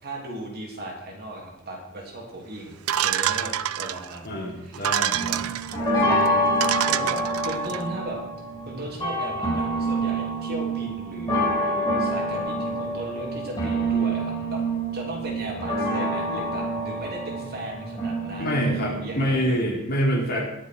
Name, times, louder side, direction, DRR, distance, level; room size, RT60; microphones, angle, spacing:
voice 1, 0.0-4.8 5.3-6.5 6.9-8.2 8.6-14.6 14.9-19.6, right 1 dB, 45° right, 0 dB, 3.1 m, -36 dB
sound 1, 2.9-4.2 4.7-5.8 6.3-6.4 6.6-7.8, right 10 dB, 75° right, 0.5 m, -26 dB
voice 2, 4.2-5.4 18.4-20.4, equal, 45° left, -3 dB, 4.0 m, -26 dB
sound 2, 5.1-19.3, right 1 dB, 20° left, 4.2 m, -27 dB
21.0 x 7.1 x 4.6 m, 0.86 s
head